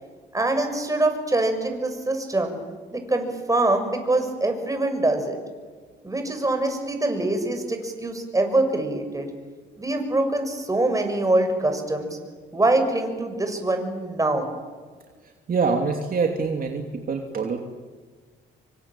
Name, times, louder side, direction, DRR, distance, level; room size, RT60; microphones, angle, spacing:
voice 1, 0.3-2.6 2.9-5.4 6.0-9.3 9.8-12.1 12.5-14.5, right 2 dB, 15° right, 5 dB, 6.6 m, -24 dB
voice 2, 15.2-17.6, right 4 dB, 45° right, 3 dB, 2.9 m, -25 dB
26.5 x 24.5 x 9.1 m, 1.5 s
cardioid pair, 90°, 20 cm